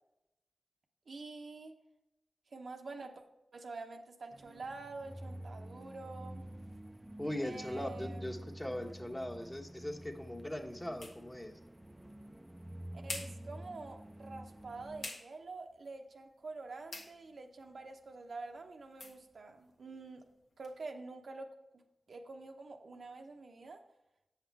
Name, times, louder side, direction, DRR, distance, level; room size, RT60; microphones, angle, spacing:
voice 1, 1.1-1.7 2.5-3.2 3.5-6.4 7.4-8.4 12.9-20.2 20.6-23.8, right 3 dB, 70° right, 3 dB, 0.8 m, -47 dB
sound 1, 4.3-15.1, right 1 dB, 15° right, 0.6 m, -49 dB
voice 2, 7.2-11.5, left 1 dB, 15° left, 2 dB, 1.3 m, -40 dB
sound 2, 9.3-20.8, left 2 dB, 80° left, 1.3 m, -52 dB
8.0 x 5.8 x 4.7 m, 0.91 s
cardioid pair, 45°, 0 cm